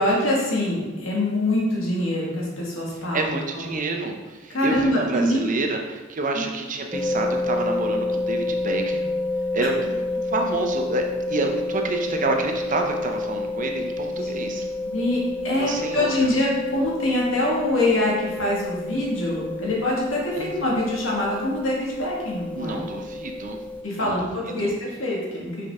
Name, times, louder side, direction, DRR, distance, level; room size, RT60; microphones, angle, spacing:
voice 1, 0.0-3.3 3.5-3.7 4.5-5.4 6.3-6.5 9.6-9.7 14.1-14.6 14.9-22.8 23.8-25.6, left 1 dB, 70° left, -4 dB, 2.0 m, -24 dB
voice 2, 3.1-9.1 9.5-14.7 15.5-16.3 20.3-20.5 22.5-23.6 23.9-24.3 24.6-24.7, right 3 dB, 40° right, 3 dB, 0.7 m, -28 dB
sound 1, 6.9-23.8, left 2 dB, 5° left, 0.3 m, -29 dB
6.4 x 5.2 x 3.7 m, 1.2 s
head